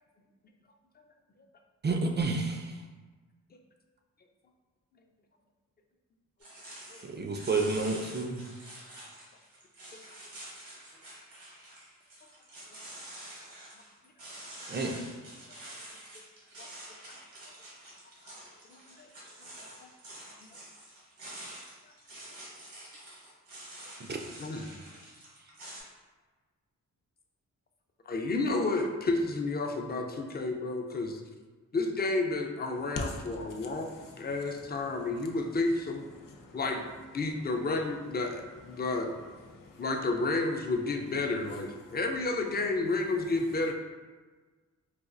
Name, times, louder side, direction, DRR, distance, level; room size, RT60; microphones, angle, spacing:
voice 1, 1.8-2.7 7.0-8.4 14.7-15.0 24.1-24.2, right 3 dB, 30° right, 3 dB, 0.4 m, -30 dB
sound 1, 6.4-25.8, right 1 dB, 85° right, 1.1 m, -47 dB
voice 2, 18.7-19.1 19.8-19.9 24.2-24.7 28.1-31.2 31.7-33.9 34.2-36.1 36.5-36.8 37.1-39.1 39.8-43.7, left 2 dB, 30° left, 3 dB, 0.4 m, -31 dB
voice 3, 33.0-34.4 34.9-35.3 36.1-36.6 37.4-37.6 38.7-38.9 39.3-39.9 41.8-42.0, left 2 dB, 80° left, 0 dB, 0.6 m, -44 dB
4.1 x 2.3 x 2.5 m, 1.4 s
cardioid pair, 65°, 33 cm